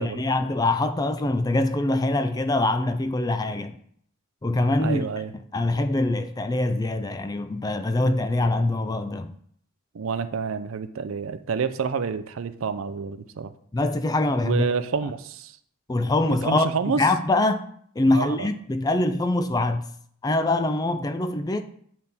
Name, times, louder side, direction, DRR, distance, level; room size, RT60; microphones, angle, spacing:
voice 1, 0.0-3.8 4.4-5.0 5.5-9.3 13.7-14.7 15.9-16.7 17.0-17.6 18.0-19.8 20.2-21.6, left 2 dB, 20° left, 0.3 m, -24 dB
voice 2, 4.8-5.3 9.9-13.5 14.4-15.5 16.4-17.0 18.1-18.5, right 5 dB, 75° right, 0.5 m, -28 dB
8.7 x 3.6 x 4.1 m
head